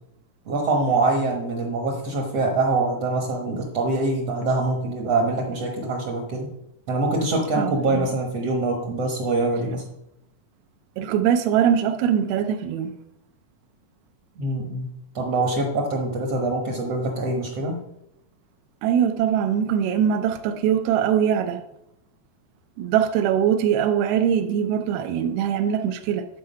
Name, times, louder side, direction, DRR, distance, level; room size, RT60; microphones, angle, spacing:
voice 1, 0.4-6.5 6.9-9.8 14.4-17.8, right 2 dB, 60° right, 1.6 m, -24 dB
voice 2, 7.6-8.1 11.0-13.0 18.8-21.6 22.8-26.3, right 9 dB, 85° right, 2.6 m, -22 dB
11.0 x 4.5 x 5.6 m
omnidirectional pair, 4.4 m